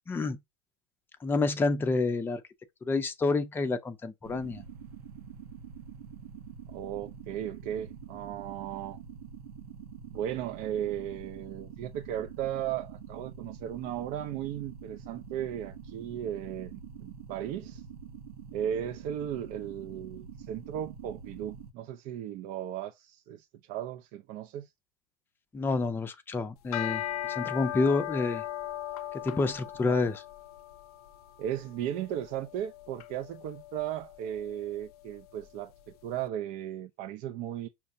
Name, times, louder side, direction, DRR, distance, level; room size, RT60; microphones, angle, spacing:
voice 1, 0.1-0.4 1.2-2.4 2.8-4.6 25.5-27.0 27.3-28.4 29.2-30.2, left 3 dB, 10° left, 0.5 m, -28 dB
sound 1, 4.2-21.7, right 7 dB, 85° right, 0.9 m, -46 dB
voice 2, 6.7-9.0 10.1-17.8 18.5-24.7 29.9-30.0 31.4-37.7, right 10 dB, 50° right, 0.5 m, -36 dB
sound 2, 26.6-35.9, left 12 dB, 80° left, 0.5 m, -39 dB
5.6 x 2.2 x 2.7 m
hypercardioid pair, 110°, 19 cm